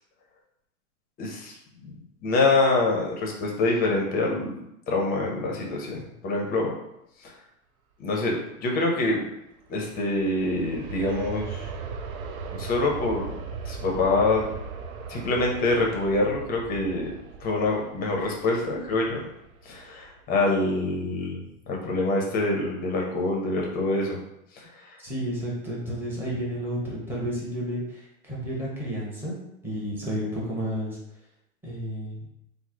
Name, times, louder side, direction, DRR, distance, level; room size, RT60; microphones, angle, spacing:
voice 1, 1.2-1.5 1.8-4.6 4.9-6.7 7.2-7.3 8.0-9.3 9.7-11.7 12.5-13.4 13.6-14.5 15.1-17.1 17.4-19.2 19.6-24.2 24.5-25.0, left 2 dB, 20° left, 0 dB, 0.6 m, -26 dB
Aircraft, 9.6-20.4 20.9-21.0, right 5 dB, 80° right, 0.6 m, -38 dB
voice 2, 25.0-29.4 29.6-31.0 31.6-32.3, equal, 5° right, -6 dB, 0.8 m, -31 dB
3.1 x 2.1 x 3.6 m, 0.83 s
hypercardioid pair, 120°, 42 cm